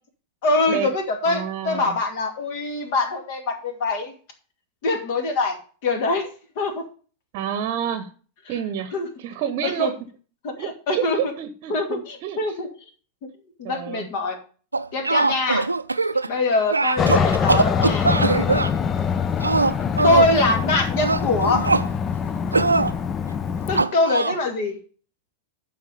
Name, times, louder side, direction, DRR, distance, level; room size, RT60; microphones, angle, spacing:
voice 1, 0.4-4.1 4.8-5.6 5.8-6.3 6.6-6.8 8.9-9.1 9.6-9.9 10.4-11.3 11.7-12.7 13.6-14.4 14.9-15.7 16.3-18.1 20.0-21.7 23.7-24.8, left 3 dB, 50° left, 5 dB, 2.5 m, -23 dB
voice 2, 1.3-2.0 7.3-8.1 8.5-8.9 9.2-9.9 10.6-12.4 13.6-14.1, right 9 dB, 45° right, 11 dB, 1.0 m, -28 dB
sound 1, 14.7-16.3 16.7-18.7 19.4-20.3 21.0-21.9 22.5-22.9 23.8-24.4, right 3 dB, 80° right, 0.5 m, -21 dB
Aircraft, 17.0-23.8, left 7 dB, 25° left, 0.6 m, -24 dB
11.5 x 4.6 x 6.8 m, 0.40 s
figure-of-eight pair, 90°, 0 cm